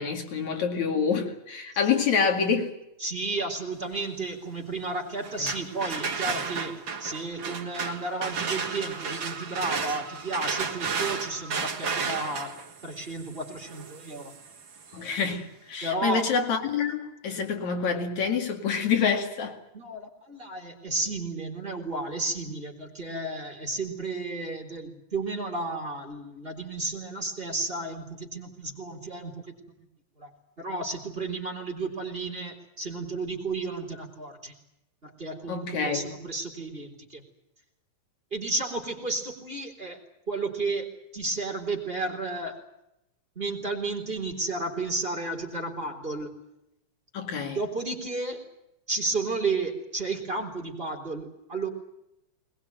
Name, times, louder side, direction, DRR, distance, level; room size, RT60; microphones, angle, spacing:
voice 1, 0.0-2.7 14.9-19.6 35.5-36.1 47.1-47.6, left 6 dB, 70° left, 3.5 m, -27 dB
voice 2, 3.0-14.3 15.8-16.3 19.7-29.6 30.2-30.3 30.6-34.5 35.0-37.2 38.3-40.0 40.3-42.6 43.4-46.3 47.5-48.5 48.9-51.7, right 3 dB, 20° right, 3.8 m, -32 dB
sound 1, 5.2-15.0, right 5 dB, 45° right, 2.6 m, -33 dB
21.5 x 21.0 x 9.2 m
omnidirectional pair, 3.3 m